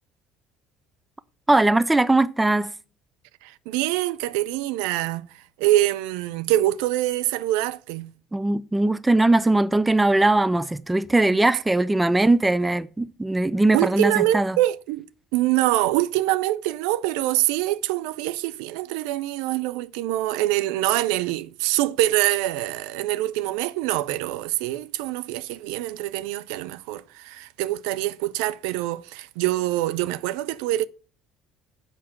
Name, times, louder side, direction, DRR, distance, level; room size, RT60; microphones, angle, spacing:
voice 1, 1.5-2.7 8.3-14.6, right 2 dB, 10° right, 0.5 m, -20 dB
voice 2, 3.4-8.1 13.7-15.1 15.3-30.9, right 15 dB, 65° right, 0.4 m, -25 dB
7.6 x 5.5 x 7.5 m
figure-of-eight pair, 60°, 0 cm